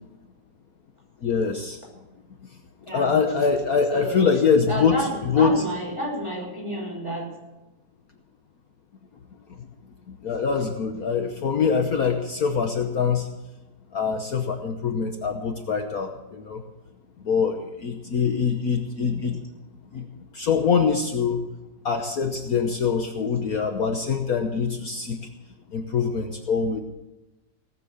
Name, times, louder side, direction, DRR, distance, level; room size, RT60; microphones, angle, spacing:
voice 1, 1.2-1.8 2.9-5.6 10.1-13.3 13.9-16.6 17.2-19.4 19.9-20.0 20.3-21.4 21.8-25.2 25.7-26.8, left 6 dB, 60° left, 4 dB, 1.4 m, -24 dB
voice 2, 3.9-4.3 4.7-7.3 19.1-19.3, equal, 15° right, -3 dB, 5.8 m, -30 dB
18.0 x 7.6 x 8.2 m, 1.0 s
omnidirectional pair, 1.9 m